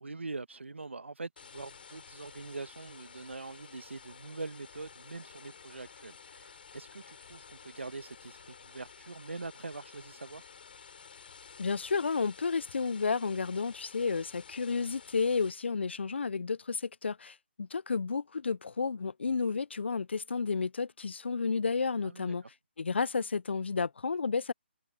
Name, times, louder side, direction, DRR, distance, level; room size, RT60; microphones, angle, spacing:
voice 1, 0.0-10.4 22.0-22.3, right 3 dB, 85° right, 1.2 m, -43 dB
sound 1, 1.4-15.5, left 6 dB, 55° left, 5.8 m, -52 dB
voice 2, 11.6-22.4 22.8-24.5, left 5 dB, 70° left, 0.6 m, -31 dB
figure-of-eight pair, 155°, 6 cm